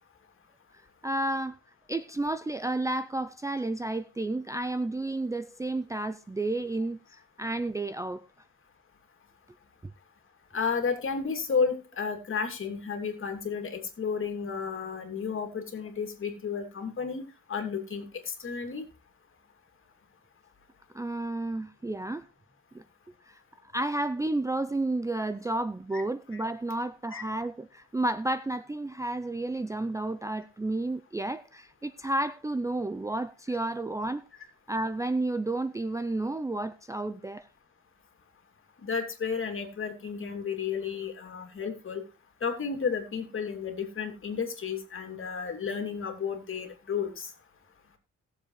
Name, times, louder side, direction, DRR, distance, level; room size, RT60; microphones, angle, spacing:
voice 1, 1.0-1.6 1.9-7.0 7.4-8.3 20.9-22.3 22.7-22.8 23.3-34.2 34.7-37.5, right 2 dB, 10° right, 0.5 m, -31 dB
voice 2, 10.5-18.8 25.9-26.0 26.3-26.4 27.1-27.2 38.8-42.0 42.4-47.3, left 6 dB, 45° left, 2.7 m, -32 dB
19.0 x 7.3 x 3.2 m
cardioid pair, 90°, 30 cm